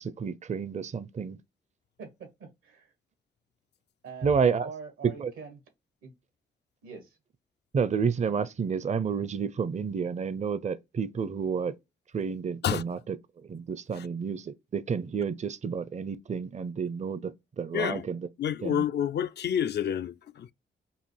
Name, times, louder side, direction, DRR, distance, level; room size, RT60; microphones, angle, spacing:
voice 1, 0.0-1.4 4.2-4.7 5.0-5.3 7.7-11.8 12.1-18.3 18.6-18.9, right 6 dB, 35° right, 0.5 m, -30 dB
voice 2, 2.0-2.9 4.0-5.5 6.0-6.1 6.8-7.1, right 5 dB, 85° right, 1.7 m, -44 dB
voice 3, 17.7-18.1 18.4-20.5, left 9 dB, 55° left, 0.4 m, -29 dB
5.4 x 2.4 x 3.3 m
supercardioid pair, 55°, 20 cm